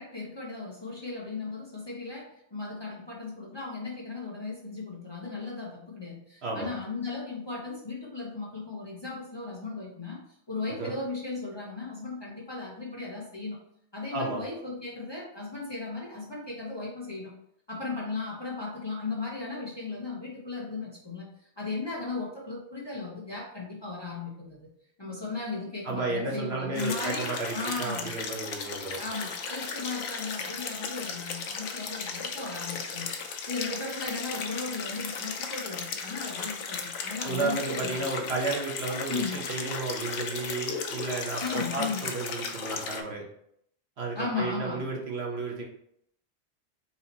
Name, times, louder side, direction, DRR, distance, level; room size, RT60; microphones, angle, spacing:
voice 1, 0.0-10.2 10.5-13.6 13.9-17.3 17.7-21.3 21.6-24.7 25.0-28.1 29.0-33.1 33.5-38.1 39.1-39.4 41.4-42.1 44.1-44.9, left 3 dB, 25° left, -4 dB, 0.8 m, -36 dB
voice 2, 25.8-29.0 37.2-43.2 44.0-45.6, right 3 dB, 65° right, -1 dB, 1.2 m, -32 dB
sound 1, 26.8-43.0, left 5 dB, 90° left, 1.0 m, -36 dB
4.2 x 2.9 x 4.0 m, 0.71 s
omnidirectional pair, 1.2 m